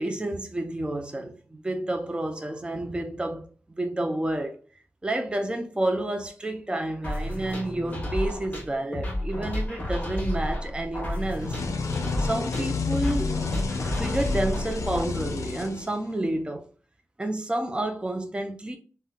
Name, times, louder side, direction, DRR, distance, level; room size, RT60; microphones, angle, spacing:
voice 1, 0.0-4.6 5.0-11.6 12.2-13.4 13.9-16.6 17.2-18.8, right 1 dB, 20° right, 0.5 m, -30 dB
sound 1, 7.0-15.0, left 1 dB, 25° left, 1.0 m, -31 dB
sound 2, 11.4-16.3, left 4 dB, 85° left, 0.4 m, -30 dB
3.6 x 2.1 x 2.3 m
wide cardioid pair, 75°, 5 cm